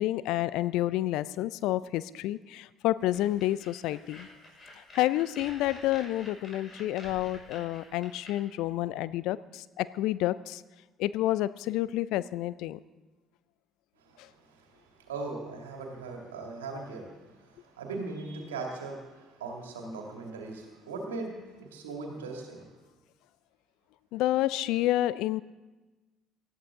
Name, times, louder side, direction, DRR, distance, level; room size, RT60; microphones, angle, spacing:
voice 1, 0.0-4.3 4.9-10.6 11.0-12.8 24.1-25.4, left 15 dB, 65° left, 18 dB, 0.4 m, -29 dB
sound 1, 3.1-8.3, left 1 dB, 40° left, 5.6 m, -48 dB
voice 2, 14.0-22.7, right 3 dB, 85° right, 1 dB, 2.2 m, -39 dB
19.0 x 13.5 x 3.7 m, 1.2 s
hypercardioid pair, 50°, 0 cm